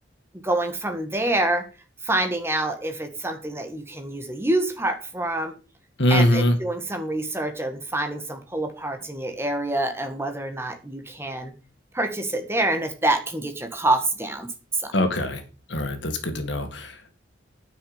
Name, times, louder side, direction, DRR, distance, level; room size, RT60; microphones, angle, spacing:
voice 1, 0.4-1.6 2.0-5.5 6.1-11.5 11.9-14.9, right 2 dB, 10° right, 6 dB, 1.6 m, -26 dB
voice 2, 6.0-6.6 14.9-15.4 15.7-17.1, left 1 dB, 65° left, 7 dB, 2.2 m, -22 dB
9.6 x 6.3 x 7.1 m, 0.34 s
head